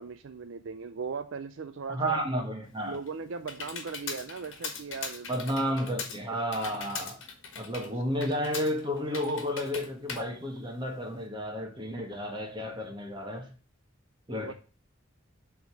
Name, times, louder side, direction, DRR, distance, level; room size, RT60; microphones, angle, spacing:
voice 1, 0.0-2.2 2.8-5.3 7.8-8.0 14.4-14.5, right 5 dB, 65° right, 0.5 m, -38 dB
voice 2, 1.9-3.0 5.3-7.2 7.5-13.5 14.3-14.5, equal, 20° right, 1.5 m, -32 dB
Computer keyboard, 2.7-11.2, left 5 dB, 60° left, 1.5 m, -41 dB
7.4 x 3.7 x 6.1 m
head